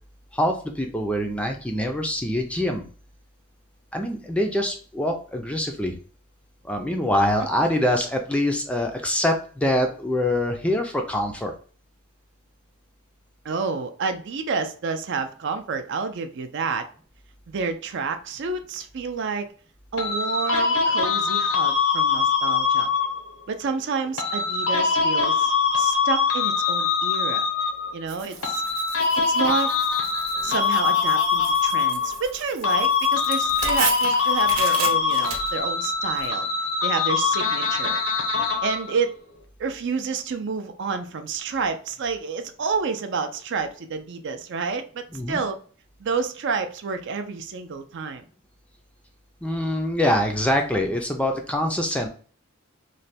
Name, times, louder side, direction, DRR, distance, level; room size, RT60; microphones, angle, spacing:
voice 1, 0.3-2.9 3.9-6.0 6.6-11.5 45.1-45.4 49.4-52.1, left 1 dB, 5° left, 3 dB, 0.4 m, -24 dB
voice 2, 13.4-16.9 17.5-19.5 19.9-22.9 23.5-27.5 27.9-28.6 29.3-29.8 30.4-36.5 36.8-38.0 38.6-39.2 39.6-45.6 46.0-48.2, right 5 dB, 55° right, 8 dB, 0.4 m, -29 dB
sound 1, 20.0-23.3 24.2-28.0 28.4-32.4 32.6-39.0, left 5 dB, 80° left, 0.7 m, -23 dB
Tearing, 28.1-36.3, right 5 dB, 85° right, 0.8 m, -35 dB
3.2 x 2.2 x 4.1 m, 0.42 s
head